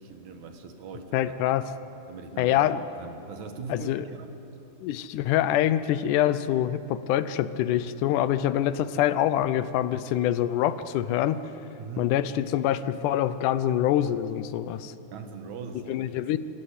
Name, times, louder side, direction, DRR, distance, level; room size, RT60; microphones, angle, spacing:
voice 1, 0.0-1.3 2.1-2.6 2.9-4.4 9.0-9.1 11.8-12.2 15.1-16.0, right 4 dB, 70° right, 6 dB, 2.7 m, -40 dB
voice 2, 1.1-1.6 2.4-2.8 3.7-4.1 4.8-11.4 12.0-14.9 15.9-16.4, left 12 dB, 85° left, 14 dB, 2.2 m, -25 dB
27.5 x 15.5 x 8.3 m, 3.0 s
omnidirectional pair, 3.6 m